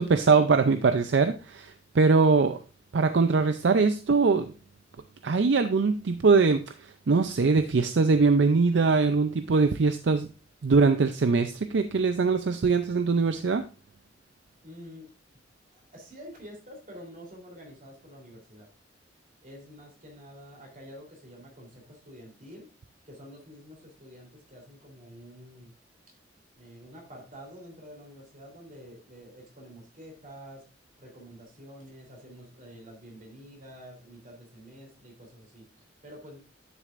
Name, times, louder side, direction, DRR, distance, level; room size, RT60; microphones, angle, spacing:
voice 1, 0.0-2.6 2.9-4.5 5.2-10.3 10.6-13.6, right 4 dB, 70° right, 9 dB, 0.5 m, -22 dB
voice 2, 14.6-15.1 15.7-18.7 19.4-22.7 23.1-25.7 26.6-30.7 31.0-36.4, equal, 45° right, 0 dB, 3.4 m, -48 dB
10.5 x 6.6 x 2.5 m, 0.34 s
head